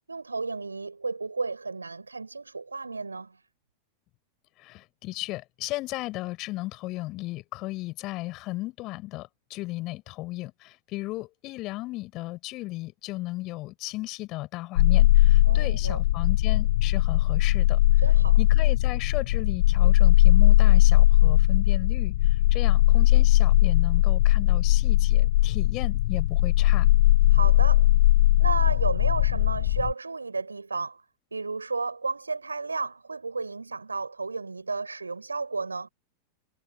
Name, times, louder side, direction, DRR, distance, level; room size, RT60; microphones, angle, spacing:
voice 1, 0.1-3.4 15.4-16.0 18.0-18.4 27.3-27.9 28.4-31.0 31.3-35.9, right 4 dB, 80° right, 4.9 m, -32 dB
voice 2, 4.6-17.8 18.4-26.9, left 19 dB, 40° left, 5.1 m, -35 dB
sound 1, 14.8-29.9, left 15 dB, 55° left, 0.4 m, -19 dB
figure-of-eight pair, 90°, 0 cm